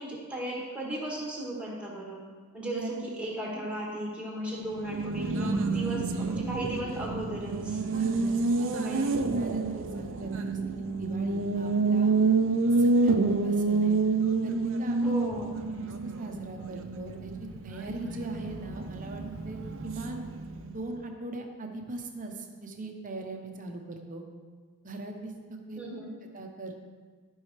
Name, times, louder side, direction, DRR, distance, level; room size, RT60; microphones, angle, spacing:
voice 1, 0.0-2.2 2.5-7.8 8.6-9.0 15.0-15.6 25.8-26.1, right 1 dB, 5° right, -4 dB, 1.9 m, -36 dB
Race car auto racing, 4.6-20.9, right 3 dB, 60° right, 0.6 m, -28 dB
voice 2, 7.9-9.1 9.3-12.2 12.8-14.0 14.4-15.1 15.9-19.6 19.8-20.2 20.7-24.2 24.8-25.8 26.3-26.7, right 2 dB, 35° right, 3 dB, 0.9 m, -40 dB
14.0 x 5.5 x 3.3 m, 1.5 s
head